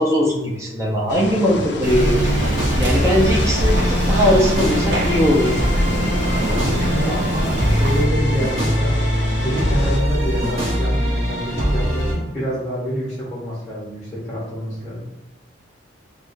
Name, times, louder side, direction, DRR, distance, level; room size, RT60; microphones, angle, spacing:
voice 1, 0.0-2.5 2.8-5.6, equal, 15° right, -3 dB, 0.7 m, -20 dB
sound 1, 1.1-10.0, left 1 dB, 60° left, 0.5 m, -29 dB
sound 2, 1.8-8.1, right 1 dB, 65° right, 0.6 m, -24 dB
sound 3, 1.9-12.1, equal, 30° right, 1.4 m, -22 dB
voice 2, 6.7-9.0 9.4-15.1, equal, ahead, -8 dB, 1.1 m, -27 dB
6.1 x 2.4 x 2.6 m, 1.0 s
head